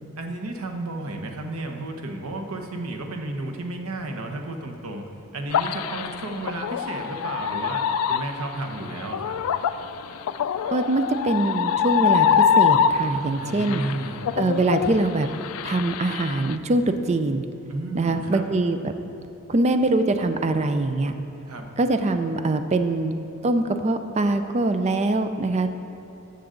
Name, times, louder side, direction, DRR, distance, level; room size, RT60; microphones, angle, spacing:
voice 1, 0.2-9.4 13.4-14.2 17.7-18.4 21.5-21.7, right 2 dB, 85° right, 3 dB, 1.0 m, -33 dB
sound 1, 5.5-13.3 13.6-16.5, left 8 dB, 80° left, 0.3 m, -24 dB
voice 2, 10.7-13.8 14.4-15.3 15.6-17.4 17.9-18.9 19.5-21.1 21.8-23.1 23.4-25.7, right 2 dB, 30° right, 8 dB, 0.4 m, -23 dB
13.0 x 6.9 x 3.8 m, 2.8 s
head